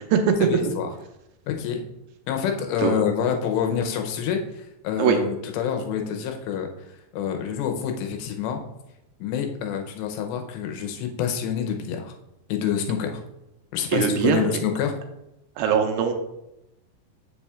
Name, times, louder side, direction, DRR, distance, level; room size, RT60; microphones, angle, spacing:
voice 1, 0.4-0.9 1.5-1.8 2.3-6.7 7.1-8.6 9.2-12.1 12.5-13.2 13.7-14.9, left 8 dB, 80° left, 4 dB, 2.8 m, -27 dB
voice 2, 13.9-14.4 15.6-16.1, right 8 dB, 85° right, 4 dB, 2.9 m, -21 dB
7.7 x 7.0 x 2.4 m, 0.89 s
omnidirectional pair, 5.1 m